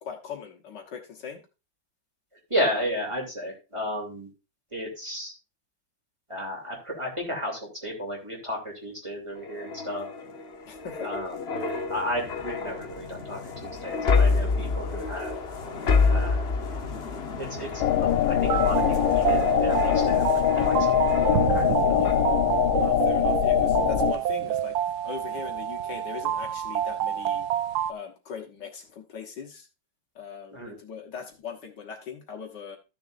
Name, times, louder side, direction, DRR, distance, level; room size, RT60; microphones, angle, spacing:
voice 1, 0.0-1.4 10.7-11.2 22.0-22.3 22.8-24.8 25.0-27.5 27.9-29.7 30.2-32.8, left 6 dB, 65° left, 3 dB, 1.8 m, -40 dB
voice 2, 2.5-4.3 4.7-5.3 6.3-10.3 11.0-11.6 11.9-15.4 16.1-16.5 17.4-17.7 18.0-21.1 21.5-22.0 30.5-30.8, equal, 15° right, -1 dB, 2.8 m, -33 dB
sound 1, 9.4-21.7 22.0-22.3, left 4 dB, 40° left, 1.0 m, -29 dB
sound 2, 17.8-24.1, left 11 dB, 85° left, 1.4 m, -23 dB
sound 3, 18.4-27.9, right 11 dB, 70° right, 1.0 m, -28 dB
14.0 x 6.9 x 2.5 m, 0.29 s
omnidirectional pair, 2.1 m